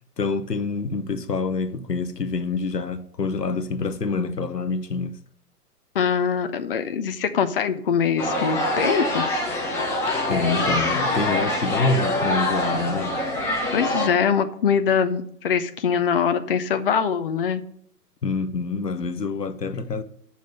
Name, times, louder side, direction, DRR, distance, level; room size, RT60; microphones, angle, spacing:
voice 1, 0.2-5.2 10.3-13.1 18.2-20.0, left 4 dB, 80° left, 0.9 m, -26 dB
voice 2, 5.9-9.2 13.7-17.6, left 7 dB, 35° left, 0.5 m, -23 dB
sound 1, 8.2-14.1, left 1 dB, 5° left, 0.7 m, -24 dB
7.3 x 5.5 x 7.4 m
figure-of-eight pair, 120°, 48 cm